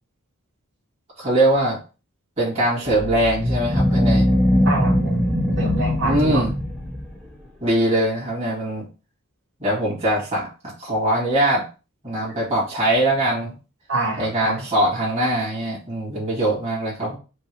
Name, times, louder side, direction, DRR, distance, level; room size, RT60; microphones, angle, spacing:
voice 1, 1.2-1.8 2.4-4.2 6.0-6.5 7.6-8.8 9.6-10.5 10.8-11.6 12.0-13.5 14.2-17.2, right 1 dB, 30° right, -7 dB, 2.3 m, -22 dB
sound 1, 2.9-7.3, left 1 dB, ahead, 1.1 m, -21 dB
voice 2, 4.6-5.3 5.6-6.4 13.9-14.7, right 2 dB, 55° right, -6 dB, 2.0 m, -25 dB
5.2 x 2.4 x 3.5 m, 0.32 s
head